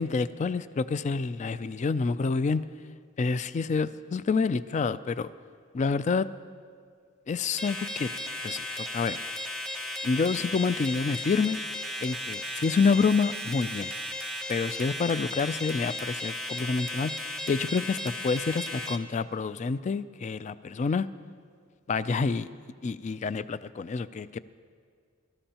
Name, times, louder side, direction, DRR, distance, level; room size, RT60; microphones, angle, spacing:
voice 1, 0.0-2.6 3.2-5.3 5.7-6.3 7.3-8.1 8.4-9.2 10.0-11.6 12.0-13.9 14.5-17.1 17.5-21.1 21.9-22.5 22.8-24.4, left 4 dB, 35° left, 15 dB, 0.3 m, -28 dB
sound 1, 7.6-19.0, left 1 dB, 5° left, 0.7 m, -35 dB
23.0 x 13.5 x 2.9 m, 2.1 s
head